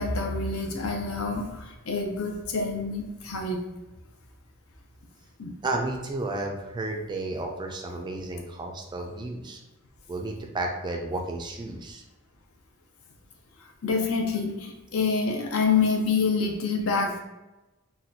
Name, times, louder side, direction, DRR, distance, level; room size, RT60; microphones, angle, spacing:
voice 1, 0.0-3.6 5.4-5.6 13.8-17.2, left 4 dB, 70° left, 2 dB, 0.6 m, -27 dB
voice 2, 5.6-9.6 10.1-12.0, right 2 dB, 20° right, 2 dB, 0.3 m, -32 dB
4.1 x 2.3 x 2.7 m, 1.0 s
head